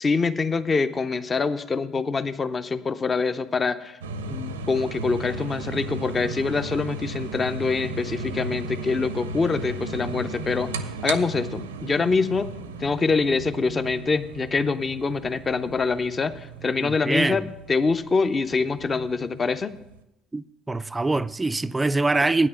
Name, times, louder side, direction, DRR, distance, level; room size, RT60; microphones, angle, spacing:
voice 1, 0.0-4.0 4.3-10.7 11.0-12.5 12.8-19.7, left 4 dB, 30° left, 0.6 m, -25 dB
sound 1, 4.0-20.0, right 3 dB, 85° right, 0.5 m, -35 dB
voice 2, 16.8-17.4 20.3-22.5, right 2 dB, 15° right, 0.3 m, -24 dB
9.1 x 6.6 x 7.0 m
hypercardioid pair, 60°, 0 cm